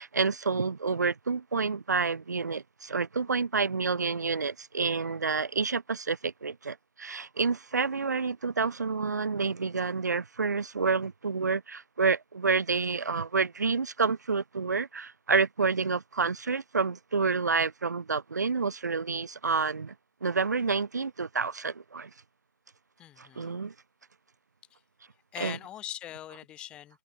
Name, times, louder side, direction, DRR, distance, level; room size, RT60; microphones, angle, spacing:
voice 1, 0.0-19.9 20.2-22.1 23.2-23.7 25.4-25.6, right 4 dB, 45° right, 1.9 m, -29 dB
voice 2, 23.0-23.5 24.7-24.8 25.3-27.0, left 12 dB, 10° left, 2.9 m, -41 dB
figure-of-eight pair, 155°, 13 cm